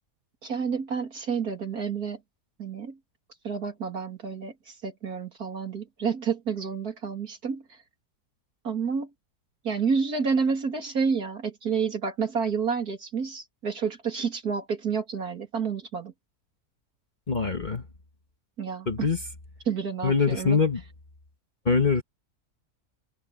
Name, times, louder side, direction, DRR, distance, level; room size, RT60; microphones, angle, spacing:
voice 1, 0.4-2.2 2.6-3.0 3.4-7.6 8.6-9.1 9.6-16.1 18.6-19.1 19.7-20.6, right 5 dB, 65° right, 3.3 m, -29 dB
voice 2, 17.3-17.9 18.9-19.2 20.0-20.8 21.6-22.0, left 5 dB, 30° left, 1.4 m, -23 dB
omnidirectional pair, 1.7 m